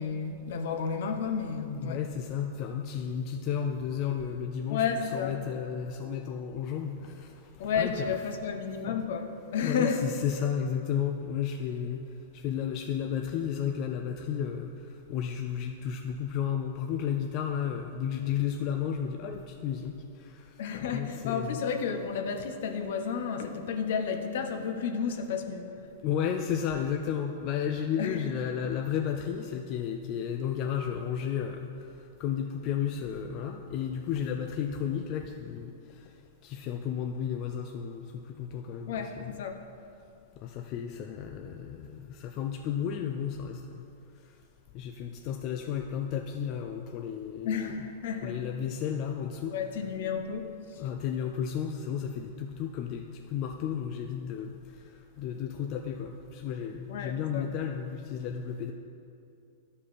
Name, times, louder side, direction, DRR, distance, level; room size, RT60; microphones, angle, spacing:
voice 1, 0.0-2.0 4.7-5.4 7.6-10.0 20.6-25.9 28.0-28.3 38.9-39.6 47.4-48.4 49.5-50.5 56.9-57.5, left 6 dB, 65° left, 6 dB, 0.9 m, -32 dB
voice 2, 1.7-7.3 7.8-8.2 9.6-12.0 12.3-14.7 15.1-19.9 20.8-21.6 26.0-31.7 32.2-35.7 36.4-39.4 40.4-43.8 44.7-47.8 48.2-49.5 50.8-54.6 55.2-58.7, left 8 dB, 35° left, 4 dB, 0.4 m, -33 dB
12.0 x 5.3 x 4.2 m, 2.6 s
supercardioid pair, 155°, 0 cm